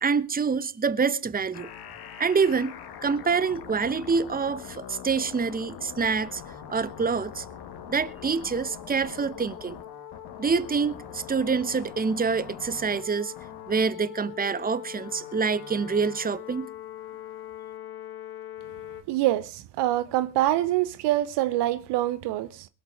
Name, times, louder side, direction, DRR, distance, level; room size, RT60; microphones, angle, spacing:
voice 1, 0.0-1.7 2.2-2.7 3.0-6.4 6.7-7.4 7.9-9.8 10.4-13.3 13.7-16.7, right 5 dB, 20° right, 1.0 m, -26 dB
sound 1, 1.5-19.0, left 10 dB, 60° left, 2.0 m, -42 dB
voice 2, 19.1-22.7, right 14 dB, 65° right, 0.9 m, -25 dB
22.5 x 8.0 x 4.9 m
hypercardioid pair, 45°, 45 cm